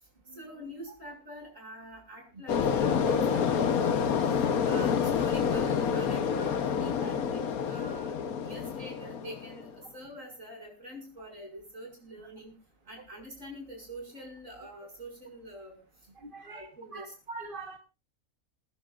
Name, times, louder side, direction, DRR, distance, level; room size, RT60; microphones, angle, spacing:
voice 1, 0.3-4.1 4.6-8.2 8.4-12.5 12.9-15.8 16.4-17.1, equal, 60° right, 0 dB, 6.9 m, -45 dB
sound 1, 2.5-9.7, left 7 dB, 80° left, 1.5 m, -28 dB
voice 2, 16.2-17.8, right 3 dB, 40° right, 4 dB, 1.4 m, -44 dB
29.5 x 10.5 x 2.5 m, 0.31 s
omnidirectional pair, 1.5 m